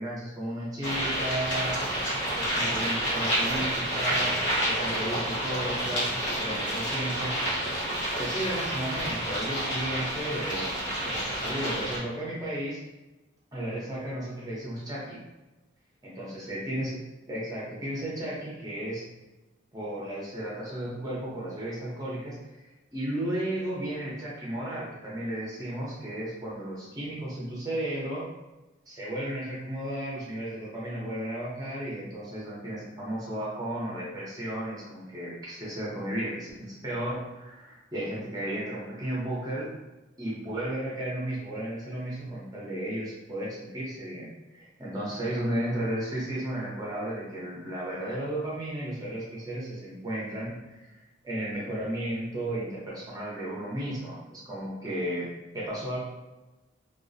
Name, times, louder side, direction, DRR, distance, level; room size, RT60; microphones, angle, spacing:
voice 1, 0.0-1.8 2.3-4.4 4.6-7.8 8.2-10.7 11.0-12.8 13.5-15.2 16.0-17.0 17.3-19.0 19.7-28.3 28.9-39.7 40.2-55.3 55.5-56.0, right 1 dB, 20° right, -6 dB, 0.7 m, -34 dB
sound 1, 0.8-12.0, right 1 dB, 60° left, 1.0 m, -29 dB
2.4 x 2.0 x 2.6 m, 1.1 s
head